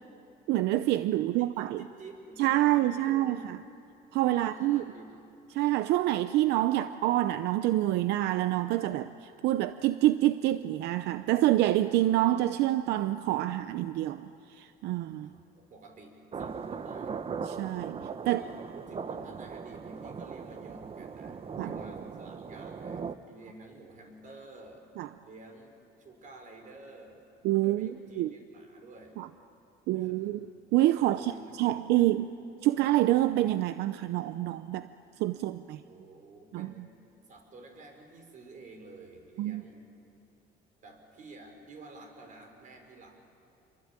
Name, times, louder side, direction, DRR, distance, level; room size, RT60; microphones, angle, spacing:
voice 1, 0.5-1.8 2.4-3.6 4.1-4.8 5.5-15.3 17.4-18.4 21.6-21.7 25.0-25.1 27.4-27.9 28.2-28.3 29.2-29.3 29.9-30.4 30.7-31.3 31.6-32.4 32.6-34.9 35.2-35.8 36.5-36.7 39.4-39.6, right 15 dB, 85° right, 12 dB, 0.7 m, -27 dB
voice 2, 1.2-3.5 4.3-5.2 15.2-17.2 18.2-24.8 25.2-27.2 27.6-29.2 29.9-30.3 31.0-32.1 35.8-36.9 37.3-39.9 40.8-43.2, right 2 dB, 50° right, 4 dB, 5.8 m, -51 dB
sound 1, 16.3-23.1, right 6 dB, 35° right, 1.0 m, -39 dB
27.5 x 24.0 x 9.0 m, 2.7 s
cardioid pair, 110°, 17 cm